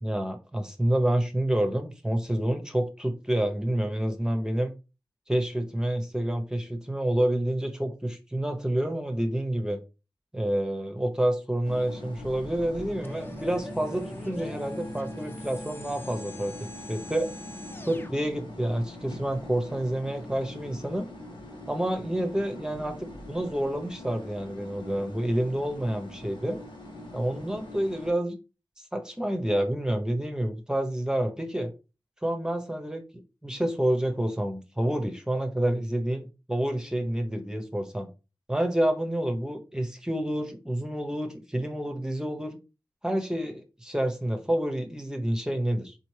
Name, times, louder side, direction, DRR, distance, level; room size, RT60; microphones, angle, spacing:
voice 1, 0.0-4.7 5.3-9.8 10.3-17.3 17.9-21.1 21.7-26.6 27.1-28.4 28.9-31.7 32.2-33.0 33.4-38.1 38.5-42.6 43.0-46.0, right 1 dB, 10° right, 5 dB, 0.7 m, -28 dB
sound 1, 11.6-28.1, left 1 dB, 85° left, 1.7 m, -42 dB
sound 2, 13.0-18.1, left 2 dB, 25° left, 0.5 m, -45 dB
4.2 x 4.0 x 3.1 m, 0.30 s
wide cardioid pair, 85°, 8 cm